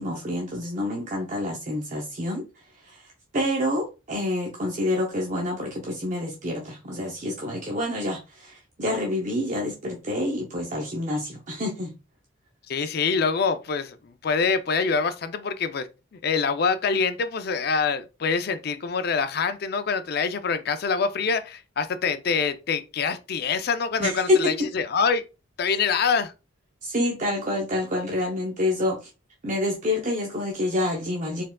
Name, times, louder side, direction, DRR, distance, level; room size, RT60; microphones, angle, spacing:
voice 1, 0.0-11.9 24.0-24.7 26.8-29.1 29.4-31.4, left 1 dB, 40° right, 0.6 m, -27 dB
voice 2, 12.7-15.9 16.2-25.2 25.6-26.3, left 5 dB, 50° left, 0.4 m, -25 dB
4.4 x 3.6 x 2.2 m
head